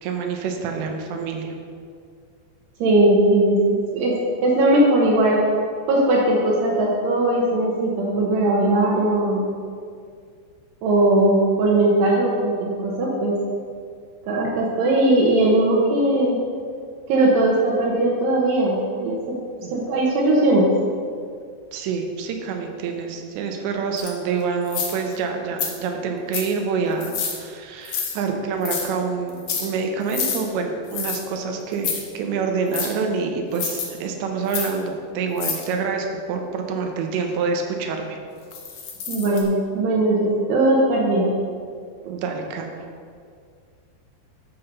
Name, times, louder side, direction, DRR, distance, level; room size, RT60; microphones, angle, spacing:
voice 1, 0.0-1.5 19.6-19.7 21.7-38.2 42.0-42.7, right 5 dB, 90° right, 3 dB, 3.2 m, -27 dB
voice 2, 2.8-4.1 4.4-5.4 5.9-9.5 10.8-13.4 14.3-16.4 17.1-19.2 19.7-20.7 39.1-41.3, right 1 dB, 75° right, -4 dB, 3.1 m, -19 dB
sound 1, 24.0-24.1 24.7-25.1 25.6-25.7 26.3-26.6 27.0-27.4 27.9-28.2 28.6-28.9 29.3-29.7 30.1-30.4 30.9-31.2 31.7-32.0 32.7-32.9 33.5-33.9 34.5-34.7 35.4-35.7 38.5-39.4, left 6 dB, 65° left, 2.3 m, -28 dB
12.5 x 5.9 x 5.4 m, 2.2 s
omnidirectional pair, 5.0 m